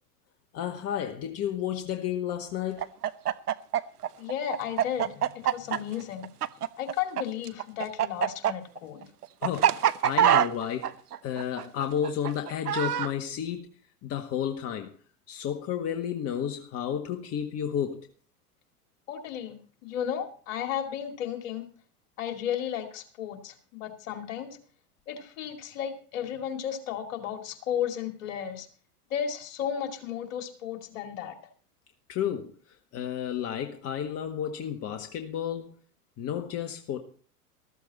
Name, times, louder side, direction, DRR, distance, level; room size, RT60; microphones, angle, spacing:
voice 1, 0.5-2.9 9.4-10.9 11.2-13.6 14.0-14.9 15.3-18.0 32.1-32.5 32.9-35.7 36.2-37.0, left 9 dB, 30° left, 1.6 m, -32 dB
Chicken rooster, 2.8-7.2 7.5-13.1, right 10 dB, 75° right, 0.8 m, -25 dB
voice 2, 4.2-6.3 6.8-9.1 19.1-21.6 22.2-24.6 25.1-28.7 29.1-31.4, left 9 dB, 55° left, 2.6 m, -34 dB
14.0 x 14.0 x 4.2 m
figure-of-eight pair, 95°, 46 cm